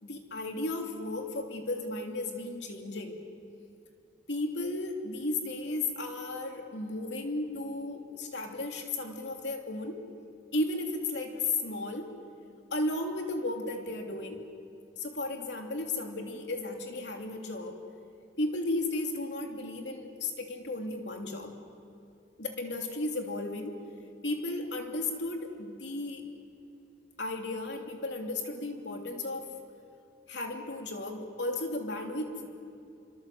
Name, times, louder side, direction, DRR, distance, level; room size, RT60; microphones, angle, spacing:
voice 1, 0.0-3.2 4.3-10.0 10.5-12.1 12.7-14.5 15.0-17.8 18.4-21.6 22.4-23.8 24.2-26.2 27.2-29.5 30.3-32.5, left 2 dB, 85° left, 2 dB, 3.1 m, -34 dB
26.5 x 25.5 x 7.8 m, 2.6 s
head